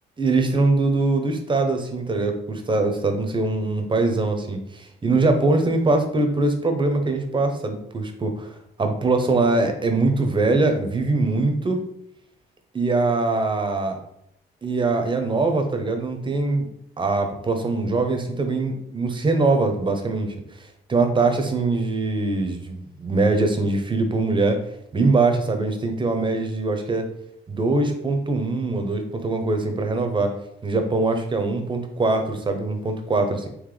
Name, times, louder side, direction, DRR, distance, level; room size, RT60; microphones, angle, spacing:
voice 1, 0.2-8.5 8.8-11.8 12.7-14.0 14.6-16.7 17.0-20.3 20.9-24.6 24.9-27.1 27.5-30.3 30.6-33.5, right 3 dB, 25° right, 5 dB, 0.7 m, -22 dB
3.9 x 3.1 x 3.2 m, 0.76 s
cardioid pair, 90°, 20 cm